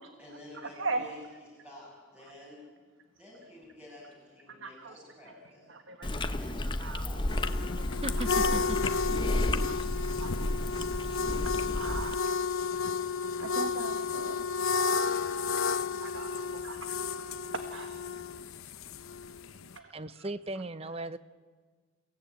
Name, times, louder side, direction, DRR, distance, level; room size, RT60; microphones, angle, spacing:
voice 1, 0.2-2.7 3.2-5.8 6.4-8.0, left 1 dB, 5° right, -5 dB, 6.6 m, -52 dB
voice 2, 0.8-1.1 4.6-4.9 5.7-6.4 6.8-7.1 7.8-8.7 9.1-9.2 9.6-10.3 10.8-10.9 11.7-12.4 12.8-12.9 13.4-14.7 15.1-15.7 16.0-16.8 17.5-18.0 19.7-19.9 20.2-20.3, right 3 dB, 65° right, 7 dB, 1.5 m, -40 dB
Chewing mastication, 6.0-12.2, left 1 dB, 20° left, 0.9 m, -32 dB
sound 1, 7.3-19.7, left 5 dB, 85° left, 0.8 m, -32 dB
voice 3, 8.0-8.8 19.9-21.2, right 1 dB, 30° right, 14 dB, 0.8 m, -37 dB
29.5 x 17.5 x 8.9 m, 1.5 s
head